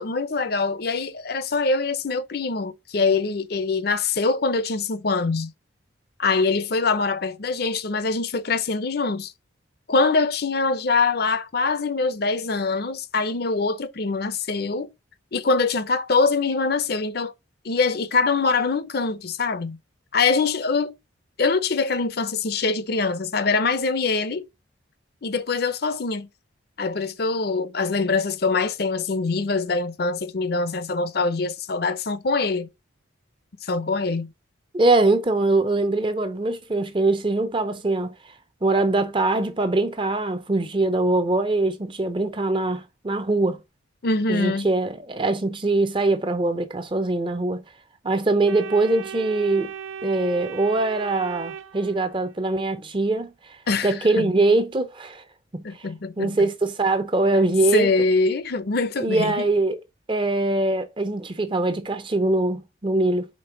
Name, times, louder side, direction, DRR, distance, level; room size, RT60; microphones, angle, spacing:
voice 1, 0.0-5.5 6.2-9.3 9.9-14.9 15.3-17.3 17.6-19.8 20.1-20.9 21.4-24.5 25.2-26.3 26.8-32.7 33.6-34.3 44.0-44.7 53.7-54.3 55.6-56.5 57.7-59.4, left 4 dB, 50° left, 0.6 m, -24 dB
voice 2, 34.7-38.2 38.6-43.6 44.3-47.6 48.0-49.7 50.0-53.3 53.8-55.2 55.5-55.6 56.2-57.9 59.0-59.8 60.1-63.3, right 2 dB, 25° right, 0.6 m, -22 dB
Organ, 48.5-52.4, right 8 dB, 80° right, 0.5 m, -36 dB
5.3 x 3.3 x 5.6 m
head